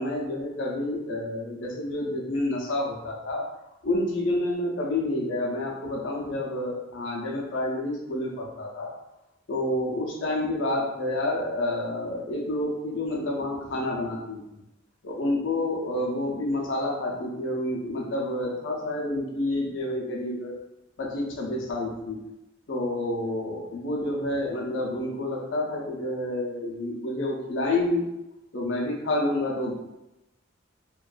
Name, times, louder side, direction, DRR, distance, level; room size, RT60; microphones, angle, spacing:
voice 1, 0.0-3.5 3.8-8.9 9.5-14.4 15.0-20.5 21.0-22.2 22.7-28.0 28.5-29.7, left 1 dB, 70° left, -1 dB, 0.5 m, -29 dB
2.5 x 2.3 x 2.2 m, 0.93 s
head